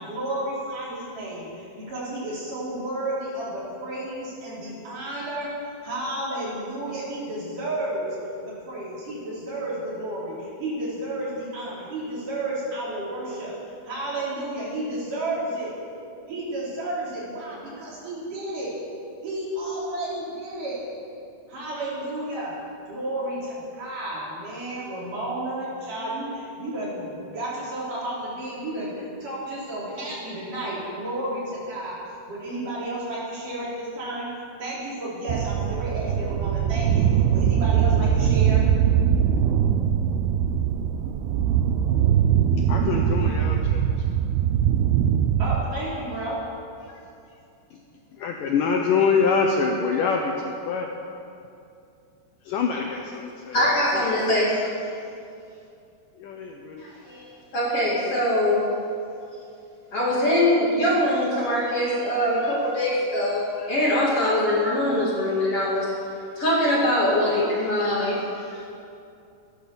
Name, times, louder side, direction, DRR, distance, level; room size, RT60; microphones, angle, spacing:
voice 1, 0.0-5.6 5.8-8.1 8.4-13.5 13.8-15.7 16.3-18.7 19.2-20.8 21.5-22.5 22.9-32.0 32.3-34.3 34.6-38.6 45.4-46.4, right 1 dB, 55° right, -7 dB, 5.5 m, -32 dB
sound 1, 35.3-45.7, right 9 dB, 80° right, 2.7 m, -21 dB
voice 2, 42.7-43.9 46.9-47.0 48.2-51.0 52.5-53.6 53.9-54.3 56.2-56.8, left 5 dB, 70° left, 2 dB, 2.1 m, -25 dB
voice 3, 53.5-54.7 57.1-57.3 57.5-58.7 59.9-65.9 66.4-68.6, left 1 dB, 40° left, -5 dB, 2.7 m, -23 dB
15.0 x 12.0 x 7.1 m, 2.6 s
omnidirectional pair, 4.6 m